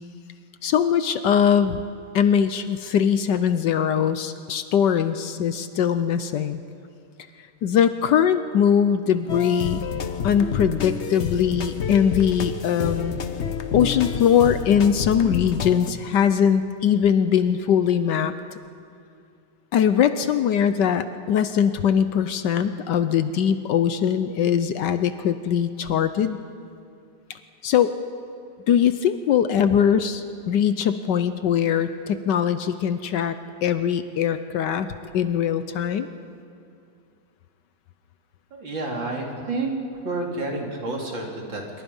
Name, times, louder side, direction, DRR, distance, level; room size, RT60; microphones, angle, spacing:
voice 1, 0.6-1.8 2.1-6.6 7.6-9.8 10.2-13.1 13.7-18.3 19.7-26.4 27.3-27.9 28.7-33.4 33.6-34.9 35.1-36.1, left 8 dB, 65° left, 11 dB, 1.2 m, -21 dB
sound 1, 9.3-15.9, left 6 dB, 50° left, 0.9 m, -29 dB
voice 2, 38.5-39.8 40.0-41.8, right 2 dB, 65° right, 0 dB, 3.7 m, -29 dB
26.5 x 23.0 x 5.5 m, 2.4 s
omnidirectional pair, 2.2 m